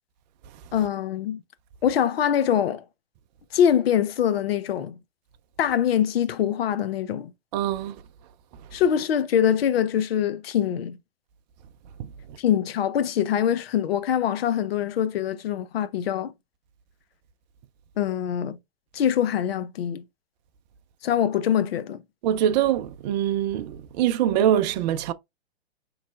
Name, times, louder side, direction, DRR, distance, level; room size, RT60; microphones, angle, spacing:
voice 1, 0.7-1.4 1.8-2.8 3.5-5.0 5.6-7.3 8.7-11.0 12.4-16.3 18.0-18.6 18.9-20.0 21.0-22.0, left 9 dB, 70° left, 0.6 m, -24 dB
voice 2, 7.5-8.0 12.0-12.1 22.2-25.1, right 11 dB, 45° right, 0.4 m, -23 dB
5.2 x 3.1 x 2.3 m
hypercardioid pair, 120°, 32 cm